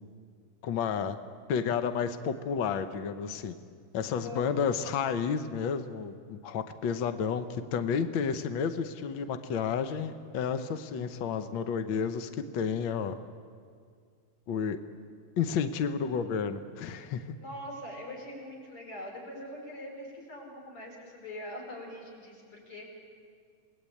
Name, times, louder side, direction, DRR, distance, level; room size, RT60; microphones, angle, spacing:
voice 1, 0.6-1.2 1.5-3.5 3.9-13.2 14.5-14.8 15.4-17.2, left 6 dB, 90° left, 9 dB, 1.0 m, -31 dB
voice 2, 4.2-4.5 17.4-22.8, left 1 dB, 40° left, -1 dB, 6.1 m, -43 dB
28.5 x 19.5 x 8.6 m, 2.1 s
omnidirectional pair, 3.8 m